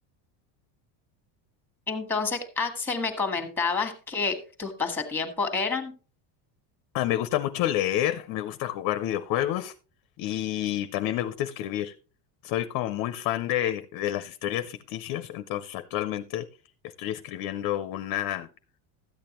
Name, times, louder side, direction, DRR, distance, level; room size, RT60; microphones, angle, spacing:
voice 1, 1.9-5.9, left 4 dB, 5° left, 5 dB, 1.4 m, -29 dB
voice 2, 6.9-9.7 10.2-11.9 12.4-16.5 17.0-18.5, left 12 dB, 45° left, 12 dB, 0.5 m, -29 dB
13.5 x 8.7 x 2.9 m, 0.35 s
cardioid pair, 170°, 49 cm